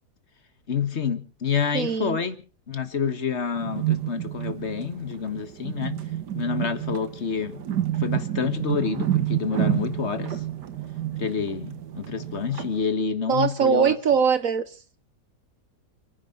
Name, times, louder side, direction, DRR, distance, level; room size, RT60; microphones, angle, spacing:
voice 1, 0.7-6.0 6.3-7.6 8.0-10.4 11.2-14.0, left 6 dB, 40° left, 1.7 m, -28 dB
voice 2, 1.7-2.2 13.3-14.6, right 6 dB, 55° right, 1.3 m, -21 dB
sound 1, 3.6-12.8, right 12 dB, 75° right, 1.8 m, -29 dB
29.5 x 10.5 x 4.0 m
omnidirectional pair, 1.8 m